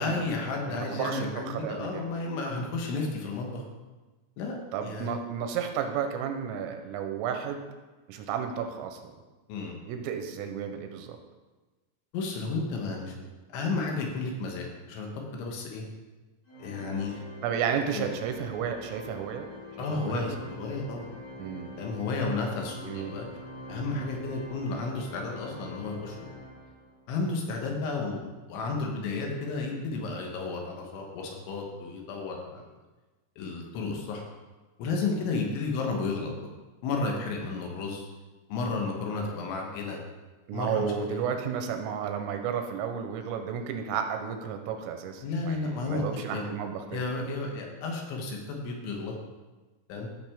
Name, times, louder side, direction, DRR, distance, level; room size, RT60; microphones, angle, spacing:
voice 1, 0.0-3.6 4.4-5.1 9.5-9.7 12.1-13.1 13.5-15.9 16.6-17.2 17.9-18.2 19.8-21.0 21.8-23.3 23.7-26.3 27.1-32.7 33.4-34.2 34.8-36.3 36.8-38.1 38.5-40.0 40.5-41.2 45.2-46.0 46.3-46.4 46.9-49.2 49.9-50.1, left 3 dB, 75° left, 1 dB, 3.3 m, -32 dB
voice 2, 0.6-2.1 4.7-7.6 8.1-9.1 9.9-11.2 16.8-17.0 17.4-19.5 19.9-20.5 21.4-21.7 22.8-23.2 40.5-47.0, right 7 dB, 90° right, 6 dB, 3.4 m, -33 dB
Organ, 16.5-27.1, left 1 dB, 60° left, 2.0 m, -45 dB
14.5 x 5.9 x 3.6 m, 1.2 s
omnidirectional pair, 5.9 m